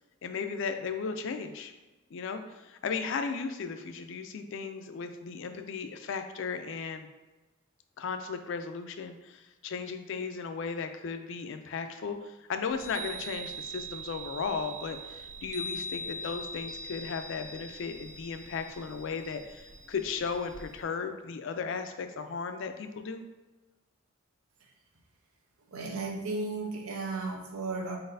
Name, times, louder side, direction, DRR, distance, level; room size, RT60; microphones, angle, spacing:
voice 1, 0.2-1.7 2.1-7.1 8.0-23.2, left 5 dB, 60° left, 8 dB, 0.4 m, -36 dB
Chime, 12.7-20.8, right 1 dB, 35° right, 0.4 m, -42 dB
voice 2, 25.7-28.0, right 3 dB, 80° right, 1 dB, 0.7 m, -34 dB
4.1 x 3.9 x 2.6 m, 1.2 s
head